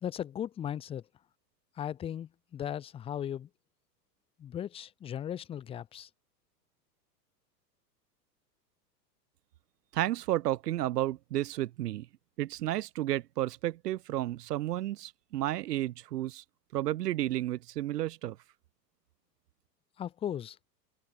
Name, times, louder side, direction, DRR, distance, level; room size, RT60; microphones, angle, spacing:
voice 1, 0.0-1.0 1.8-3.5 4.4-6.1 20.0-20.6, left 10 dB, 10° left, 0.5 m, -37 dB
voice 2, 9.9-12.1 12.4-16.4 16.7-18.4, right 14 dB, 70° right, 1.3 m, -32 dB
hypercardioid pair, 105°, 49 cm